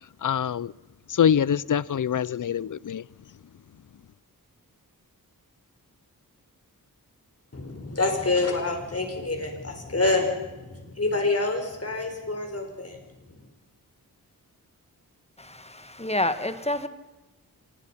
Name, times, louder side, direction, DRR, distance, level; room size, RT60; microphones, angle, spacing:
voice 1, 0.2-0.7 1.1-3.0, left 8 dB, 60° left, 0.6 m, -24 dB
voice 2, 7.5-13.0, left 3 dB, 40° left, 5.1 m, -27 dB
voice 3, 15.4-16.9, left 1 dB, 15° left, 1.5 m, -28 dB
26.0 x 19.5 x 5.8 m
wide cardioid pair, 90°, 36 cm